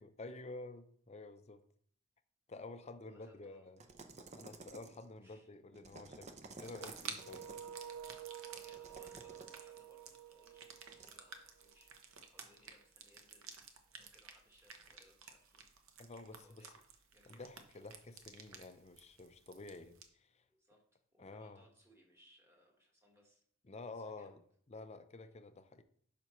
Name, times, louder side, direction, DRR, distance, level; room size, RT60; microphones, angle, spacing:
voice 1, 0.0-1.6 2.5-3.8 4.3-7.5 16.0-16.7 17.3-20.4 21.2-21.7 23.6-24.4 24.7-25.8, left 2 dB, 30° left, 0.5 m, -50 dB
voice 2, 3.1-3.6 5.2-5.5 7.6-7.7 8.4-11.9 12.3-13.5 14.0-15.7 16.3-16.7 17.1-17.5 20.5-20.8 21.1-23.4 23.9-24.3, equal, 10° right, 1.6 m, -67 dB
sound 1, 3.8-5.1 5.7-7.8 8.7-9.6 10.9-11.1, right 3 dB, 30° right, 0.6 m, -54 dB
sound 2, 6.6-20.0, right 6 dB, 60° right, 0.9 m, -53 dB
sound 3, 7.1-12.0, right 9 dB, 80° right, 0.5 m, -51 dB
11.0 x 5.8 x 3.1 m
head